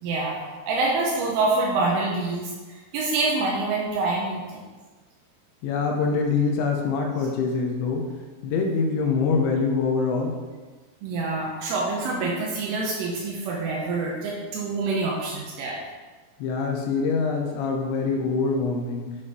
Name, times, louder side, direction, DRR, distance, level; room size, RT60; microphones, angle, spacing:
voice 1, 0.0-4.6 11.0-15.8, right 3 dB, 85° right, -3 dB, 3.4 m, -26 dB
voice 2, 5.6-8.1 8.4-10.3 16.4-19.2, left 4 dB, 85° left, 1 dB, 2.8 m, -24 dB
9.4 x 6.0 x 3.1 m, 1.3 s
omnidirectional pair, 5.7 m